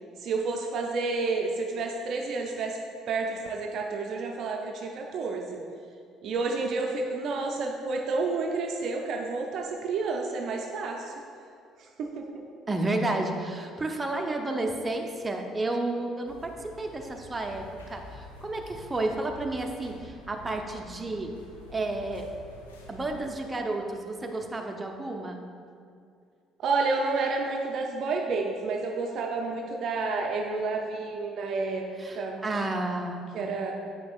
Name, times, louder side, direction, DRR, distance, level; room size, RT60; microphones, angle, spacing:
voice 1, 0.2-2.8 3.1-5.6 6.2-11.1 11.8-12.4 26.6-32.4 33.3-33.7, right 3 dB, 55° right, 1 dB, 0.5 m, -30 dB
voice 2, 12.7-21.3 21.7-22.3 22.9-25.4 32.0-33.3, right 2 dB, 20° right, 3 dB, 0.7 m, -31 dB
sound 1, 16.3-23.3, left 1 dB, 90° left, 0.6 m, -48 dB
7.4 x 5.9 x 2.4 m, 2.3 s
hypercardioid pair, 55°, 0 cm